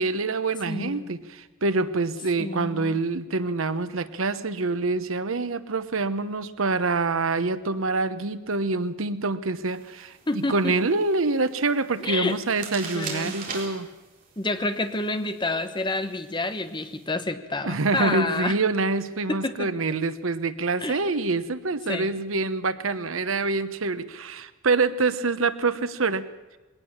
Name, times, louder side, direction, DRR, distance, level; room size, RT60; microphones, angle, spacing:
voice 1, 0.0-13.9 17.6-26.3, right 3 dB, 85° right, 13 dB, 1.0 m, -26 dB
voice 2, 0.7-1.1 2.4-3.0 10.3-10.7 12.0-12.4 12.9-13.3 14.4-18.6 19.3-19.7 20.8-21.1 21.9-22.1, left 2 dB, 25° left, 10 dB, 1.1 m, -29 dB
sound 1, 9.6-17.1, right 5 dB, 45° right, 4.0 m, -42 dB
20.5 x 18.0 x 7.3 m, 1.1 s
head